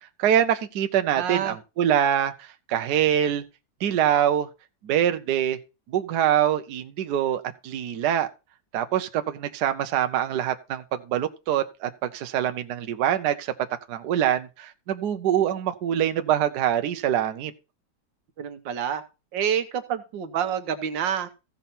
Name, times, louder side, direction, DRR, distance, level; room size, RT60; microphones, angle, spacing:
voice 1, 0.2-3.4 3.8-4.5 4.8-5.6 5.9-8.3 8.7-13.5 13.9-17.5, right 10 dB, 70° right, 1.3 m, -24 dB
voice 2, 1.1-1.6 18.4-19.0 19.3-21.3, right 8 dB, 85° right, 1.6 m, -28 dB
15.0 x 5.6 x 4.2 m
omnidirectional pair, 2.0 m